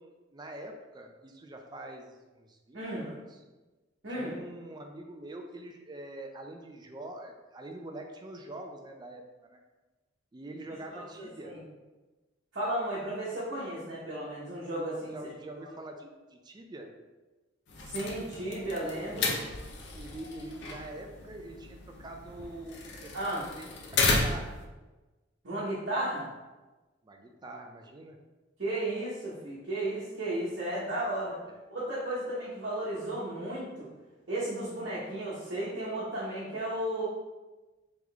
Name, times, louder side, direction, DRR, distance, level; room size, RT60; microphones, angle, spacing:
voice 1, 0.0-3.4 4.1-9.6 10.3-11.6 15.1-16.9 19.9-23.7 24.0-24.6 27.0-28.2 31.5-31.6, right 1 dB, 20° right, 3 dB, 0.4 m, -45 dB
voice 2, 2.7-3.1 4.0-4.3 10.9-11.6 12.5-15.1 17.8-19.4 23.1-23.4 25.4-26.3 28.6-31.4 31.7-33.9 34.3-37.1, right 1 dB, 65° right, -9 dB, 1.1 m, -34 dB
sound 1, 17.7-24.6, left 3 dB, 60° left, 0.6 m, -33 dB
3.8 x 3.1 x 3.4 m, 1.2 s
head